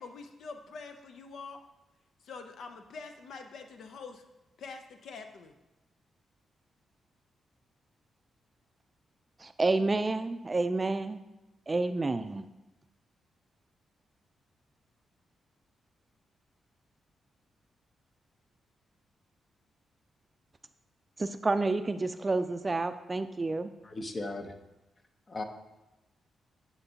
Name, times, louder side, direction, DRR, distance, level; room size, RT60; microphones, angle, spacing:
voice 1, 0.0-1.6 2.2-4.2 4.6-5.5, left 4 dB, 70° left, 6 dB, 0.5 m, -45 dB
voice 2, 9.4-11.2 11.7-12.5 21.2-23.7, right 3 dB, 30° right, 11 dB, 0.4 m, -29 dB
voice 3, 23.8-24.6 25.3-25.4, left 2 dB, 45° left, 6 dB, 0.9 m, -37 dB
10.0 x 4.4 x 2.8 m, 0.99 s
hypercardioid pair, 40°, 0 cm